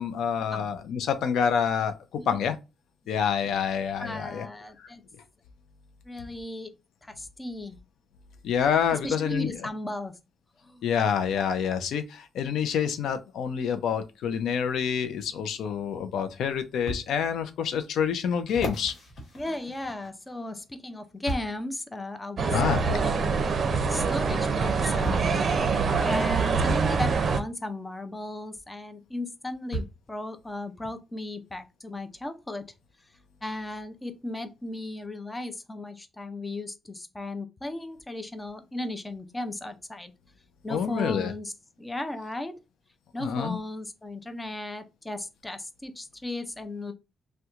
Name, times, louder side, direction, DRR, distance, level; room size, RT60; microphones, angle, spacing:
voice 1, 0.0-2.6 3.1-4.5 4.8-4.9 8.4-9.6 10.8-18.9 22.5-22.8 40.7-41.3 43.2-43.6, left 7 dB, 85° left, 0.4 m, -27 dB
voice 2, 4.0-5.0 6.1-6.7 7.1-7.8 9.0-10.1 10.6-10.8 19.3-22.5 22.8-25.3 26.0-32.6 33.4-40.1 40.6-41.5 41.8-42.5 43.1-46.9, left 1 dB, 15° left, 0.5 m, -36 dB
sound 1, 16.9-17.1 17.7-17.8 18.5-20.4 21.3-21.6 22.8-22.9 24.2-24.3 25.0-25.4 26.7-26.9 28.5-28.6 29.7-30.1 30.8-30.9, right 1 dB, 60° left, 1.3 m, -35 dB
sound 2, 22.4-27.4, right 5 dB, 50° right, 0.5 m, -25 dB
2.9 x 2.2 x 3.5 m
cardioid pair, 95°, 0 cm